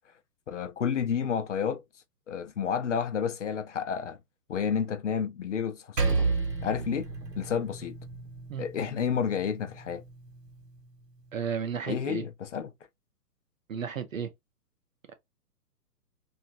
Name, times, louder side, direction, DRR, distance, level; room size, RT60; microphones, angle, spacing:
voice 1, 0.5-1.8 2.3-4.2 4.5-6.3 6.6-7.1 7.4-8.0 8.6-10.0 11.9-12.7, left 7 dB, 50° left, 0.5 m, -30 dB
Percussion, 6.0-10.7, right 4 dB, 90° right, 0.9 m, -32 dB
voice 2, 11.3-12.2 13.7-14.3, right 7 dB, 55° right, 0.6 m, -33 dB
2.8 x 2.4 x 2.5 m
figure-of-eight pair, 120°, 48 cm